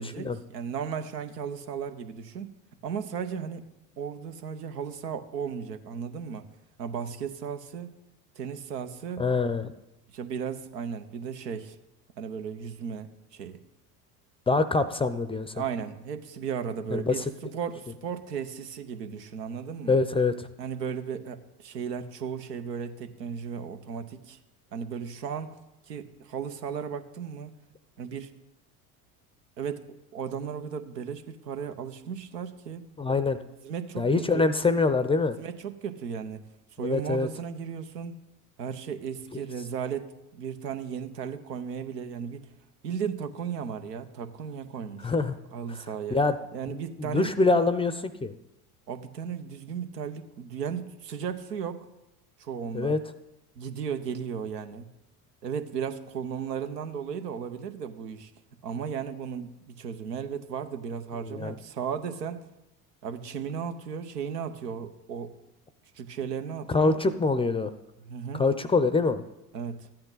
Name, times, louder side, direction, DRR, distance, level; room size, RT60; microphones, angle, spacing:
voice 1, 0.0-2.5 2.8-3.6 4.0-6.5 6.8-7.9 8.4-9.3 10.1-11.8 12.2-13.6 15.5-20.0 20.6-24.4 24.7-25.6 25.9-27.5 28.0-28.3 29.6-29.9 30.1-32.8 33.6-34.5 35.3-36.4 36.8-38.1 38.6-42.5 42.8-45.1 45.5-46.2 46.5-47.5 48.9-51.9 52.4-53.0 53.6-54.9 55.4-58.3 58.6-62.4 63.0-65.3 65.9-67.0 68.0-68.4 69.5-69.9, right 7 dB, 85° right, 8 dB, 0.9 m, -35 dB
voice 2, 9.2-9.7 14.5-15.5 16.9-17.2 19.9-20.5 33.0-33.4 34.0-35.4 36.8-37.3 45.0-45.4 46.1-46.4 47.0-48.3 52.7-53.0 61.2-61.5 66.7-67.7 68.3-69.2, left 3 dB, 10° left, 12 dB, 0.5 m, -24 dB
13.5 x 8.7 x 3.9 m, 0.92 s
hypercardioid pair, 75°, 48 cm